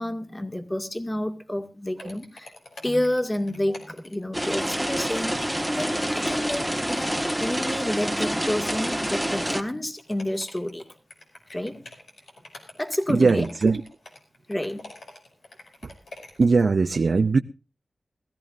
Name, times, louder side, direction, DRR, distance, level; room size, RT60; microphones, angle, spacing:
voice 1, 0.0-2.5 2.8-10.8 11.5-11.8 12.8-13.5 14.5-14.9, left 1 dB, 20° left, 2.1 m, -29 dB
sound 1, 2.0-16.6, left 2 dB, 80° left, 5.5 m, -46 dB
sound 2, 4.3-9.6, equal, ahead, 1.3 m, -27 dB
voice 2, 13.1-13.8 16.4-17.4, right 4 dB, 65° right, 0.7 m, -20 dB
21.5 x 15.0 x 2.6 m
wide cardioid pair, 80°, 0 cm